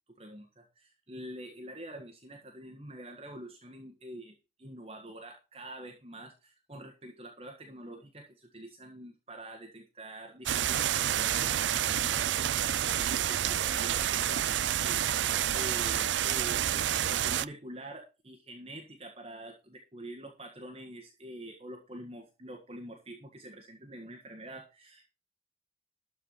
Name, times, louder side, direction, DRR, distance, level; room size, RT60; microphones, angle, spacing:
voice 1, 0.2-25.1, right 1 dB, 30° right, 2 dB, 1.6 m, -46 dB
sound 1, 10.5-17.5, right 11 dB, 75° right, 0.4 m, -29 dB
13.0 x 4.9 x 6.6 m, 0.30 s
head